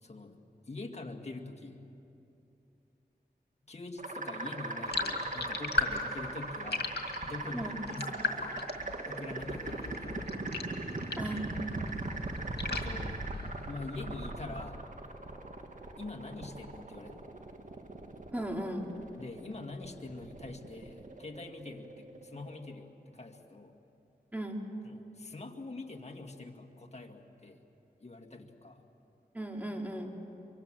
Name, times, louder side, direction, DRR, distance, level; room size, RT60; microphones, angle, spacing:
voice 1, 0.0-1.8 3.6-8.5 9.1-10.3 12.7-13.2 13.6-14.8 16.0-17.3 19.2-23.8 24.8-27.6 28.0-28.8, left 2 dB, 40° left, 3 dB, 2.2 m, -44 dB
sound 1, 4.0-22.7, right 2 dB, 50° right, 2.0 m, -40 dB
sound 2, 4.9-11.4 11.8-13.8, left 4 dB, 75° left, 2.1 m, -37 dB
voice 2, 11.2-11.5 18.3-18.9 24.3-24.6 29.3-30.1, right 1 dB, 10° right, 1 dB, 3.3 m, -36 dB
24.0 x 24.0 x 7.7 m, 2.9 s
cardioid pair, 55°, 17 cm